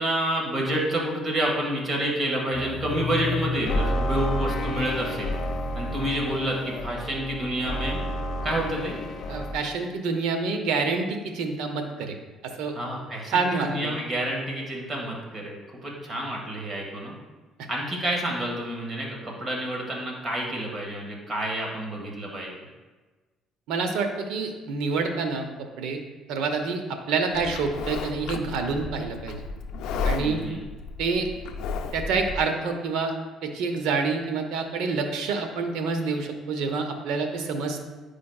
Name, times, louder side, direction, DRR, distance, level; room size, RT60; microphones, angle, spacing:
voice 1, 0.0-5.3 5.7-8.0 8.4-8.9 12.7-17.1 17.7-22.6 30.2-30.6, right 1 dB, 35° right, -1 dB, 1.7 m, -29 dB
sound 1, 2.5-9.5, left 1 dB, 55° left, 0.8 m, -30 dB
voice 2, 9.3-12.2 12.4-12.7 13.3-13.9 23.7-26.0 26.3-29.4 30.0-30.4 31.0-31.3 31.9-33.1 33.4-37.8, right 4 dB, 85° right, 5 dB, 0.7 m, -27 dB
Livestock farm animals working animals, 27.3-32.4, left 4 dB, 80° left, 0.4 m, -33 dB
9.6 x 5.0 x 2.3 m, 1.3 s
cardioid pair, 110°, 0 cm